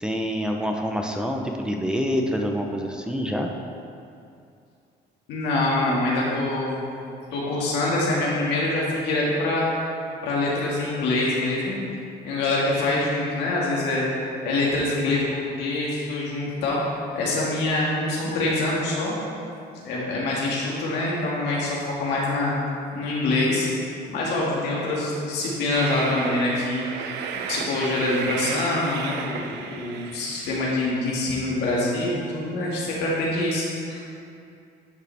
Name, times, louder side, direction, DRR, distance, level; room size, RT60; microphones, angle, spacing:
voice 1, 0.0-3.5, equal, 5° right, 2 dB, 0.6 m, -26 dB
voice 2, 5.3-6.8 7.3-9.7 10.2-11.8 12.2-14.1 14.4-16.8 17.2-19.1 19.8-22.5 22.9-23.7 24.1-26.9 27.5-34.1, left 2 dB, 90° left, -5 dB, 1.9 m, -25 dB
Train, 25.7-30.7, right 6 dB, 85° right, 0.6 m, -33 dB
10.5 x 5.7 x 3.4 m, 2.5 s
cardioid pair, 110°, 17 cm